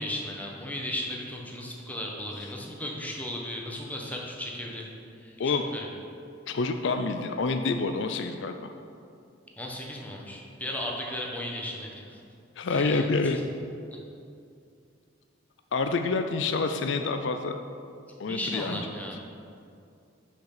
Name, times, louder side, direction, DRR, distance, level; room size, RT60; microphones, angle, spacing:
voice 1, 0.0-4.9 5.2-5.9 9.6-12.2 12.7-13.0 18.3-19.2, left 1 dB, 10° left, -1 dB, 1.0 m, -35 dB
voice 2, 6.5-8.7 12.6-13.4 15.7-17.6 18.2-18.8, left 3 dB, 60° left, 7 dB, 0.4 m, -27 dB
6.3 x 5.8 x 6.6 m, 2.5 s
head